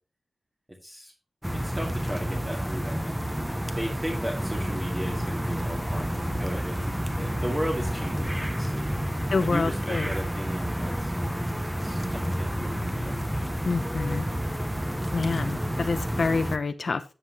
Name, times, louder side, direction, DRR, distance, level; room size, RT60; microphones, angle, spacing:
voice 1, 0.8-1.1 1.6-9.0 9.4-11.1 11.8-13.2, equal, 25° right, 2.2 m, -36 dB
sound 1, 1.4-16.6, equal, 5° right, 1.0 m, -30 dB
voice 2, 9.3-10.1 13.6-14.3 15.1-17.0, left 4 dB, 65° left, 0.7 m, -27 dB
13.0 x 7.7 x 3.0 m
wide cardioid pair, 70°, 0 cm